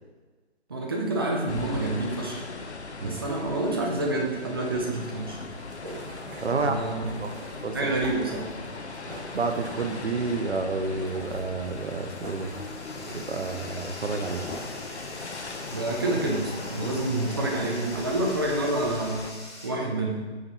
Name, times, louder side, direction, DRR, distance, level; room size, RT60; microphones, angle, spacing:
voice 1, 0.7-2.5 3.0-5.4 6.5-7.1 7.7-8.5 15.7-19.3 19.6-20.3, right 2 dB, 20° right, -1 dB, 0.6 m, -28 dB
sound 1, 1.5-19.3, left 4 dB, 80° left, 0.7 m, -39 dB
sound 2, 4.9-19.2, equal, 50° right, 1.8 m, -45 dB
voice 2, 6.4-6.8 7.2-7.3 7.6-7.9 9.3-12.5 13.1-14.4, right 4 dB, 70° right, 6 dB, 0.7 m, -29 dB
Bathtub (filling or washing), 10.5-19.7, left 1 dB, 25° left, 0.7 m, -45 dB
5.8 x 5.1 x 4.0 m, 1.3 s
figure-of-eight pair, 150°, 33 cm